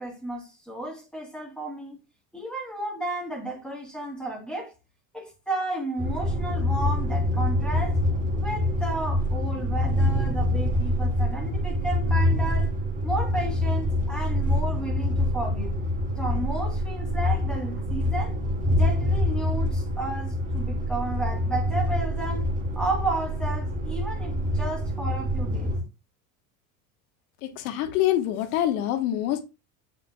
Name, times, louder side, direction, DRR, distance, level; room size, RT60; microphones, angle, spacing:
voice 1, 0.0-2.0 2.3-4.7 5.1-8.0 8.4-12.7 13.0-15.8 16.1-18.4 18.7-25.7, right 2 dB, ahead, 2.8 m, -33 dB
sound 1, 6.0-25.8, left 1 dB, 20° right, 2.0 m, -26 dB
voice 2, 27.6-29.4, left 12 dB, 80° left, 1.3 m, -25 dB
8.3 x 5.8 x 2.3 m
supercardioid pair, 120°, 42 cm